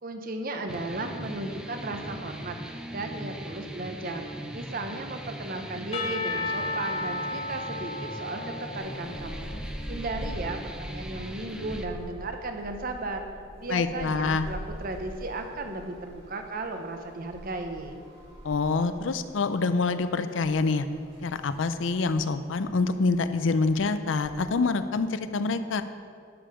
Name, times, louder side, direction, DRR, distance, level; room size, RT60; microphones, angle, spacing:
voice 1, 0.0-2.6 2.9-4.3 4.5-9.5 9.9-13.3 13.6-18.0, right 2 dB, 50° right, 5 dB, 0.9 m, -35 dB
sound 1, 0.7-11.8, equal, 5° right, 0.5 m, -40 dB
Percussion / Church bell, 5.9-9.9, left 2 dB, 35° left, 0.7 m, -34 dB
sound 2, 8.8-24.3, equal, 30° right, 2.4 m, -44 dB
voice 2, 13.7-14.5 18.4-20.8 21.2-25.8, left 4 dB, 90° left, 11 dB, 0.5 m, -26 dB
12.0 x 5.7 x 4.9 m, 2.3 s
head